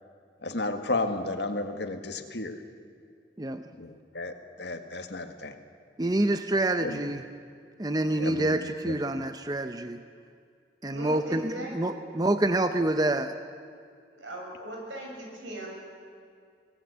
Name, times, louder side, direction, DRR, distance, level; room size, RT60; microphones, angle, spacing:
voice 1, 0.4-2.6 3.8-5.5 6.8-7.0 8.2-9.0, left 2 dB, 65° left, 7 dB, 1.8 m, -33 dB
voice 2, 6.0-7.2 7.8-10.0 10.8-13.3, right 1 dB, 20° right, 9 dB, 0.7 m, -27 dB
voice 3, 10.9-12.1 14.1-15.7, right 1 dB, 90° right, -1 dB, 7.6 m, -39 dB
24.5 x 18.5 x 8.3 m, 2.2 s
head